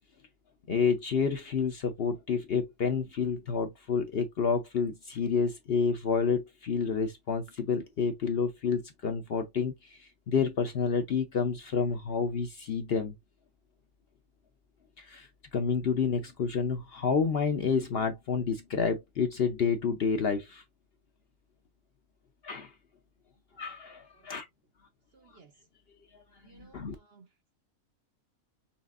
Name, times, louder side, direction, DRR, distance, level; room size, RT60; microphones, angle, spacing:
voice 1, 0.7-9.7 10.0-13.1 15.0-15.3 15.5-20.6 22.4-22.7 23.6-24.5 26.5-26.9, left 5 dB, 55° left, 0.7 m, -29 dB
voice 2, 25.1-25.5 26.4-27.3, right 5 dB, 55° right, 0.8 m, -59 dB
5.8 x 3.1 x 2.4 m
omnidirectional pair, 1.5 m